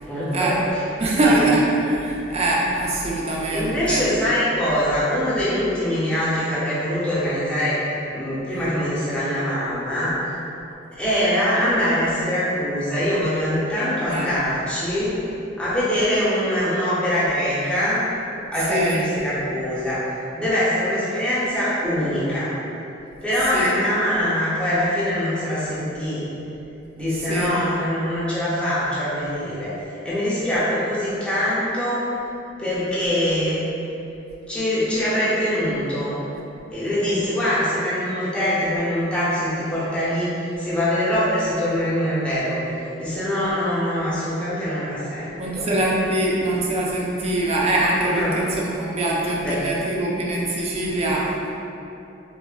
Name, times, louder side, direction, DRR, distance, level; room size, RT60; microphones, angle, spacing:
voice 1, 0.0-0.8 1.2-1.5 3.5-7.8 8.1-10.1 11.0-15.2 15.6-18.0 18.5-20.1 20.4-22.5 23.2-26.3 27.0-29.7 30.0-32.1 32.6-33.6 34.5-36.2 36.7-42.6 43.0-45.7 48.1-48.4 49.4-49.6, equal, 5° left, -11 dB, 0.7 m, -23 dB
voice 2, 1.0-4.0 14.1-14.4 18.7-19.0 23.5-23.7 27.3-27.5 45.4-51.3, right 1 dB, 35° right, -4 dB, 0.4 m, -23 dB
4.4 x 2.1 x 2.3 m, 2.8 s
head